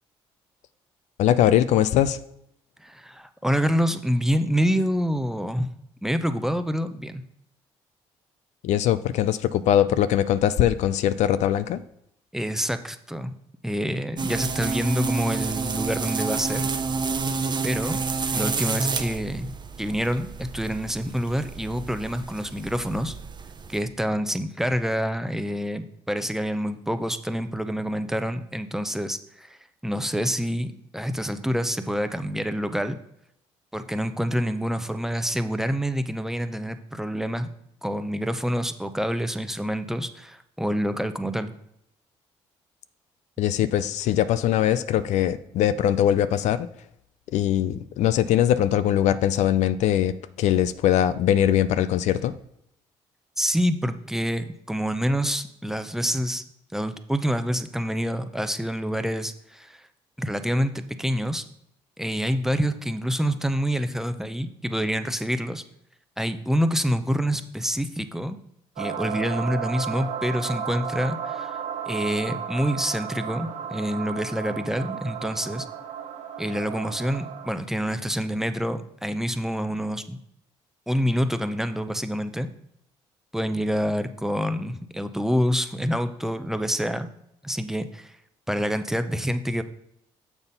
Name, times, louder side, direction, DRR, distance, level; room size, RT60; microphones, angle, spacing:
voice 1, 1.2-2.2 8.6-11.8 43.4-46.7 47.3-52.3, left 11 dB, 70° left, 14 dB, 0.4 m, -21 dB
voice 2, 2.8-5.7 6.0-7.2 12.3-13.3 13.6-16.7 17.6-18.0 18.3-23.1 23.7-29.6 29.8-33.0 33.7-37.5 37.8-41.5 53.4-56.4 56.7-59.8 60.2-61.4 62.0-65.6 66.2-68.4 68.8-71.6 71.9-75.7 76.4-80.2 80.9-82.5 83.3-87.1 87.4-88.1 88.5-89.6, equal, 5° right, 10 dB, 0.7 m, -27 dB
sound 1, 14.2-23.8, right 4 dB, 35° right, 0.8 m, -30 dB
sound 2, 68.8-77.6, right 8 dB, 75° right, 0.8 m, -34 dB
7.0 x 4.0 x 5.4 m, 0.76 s
supercardioid pair, 60°, 12 cm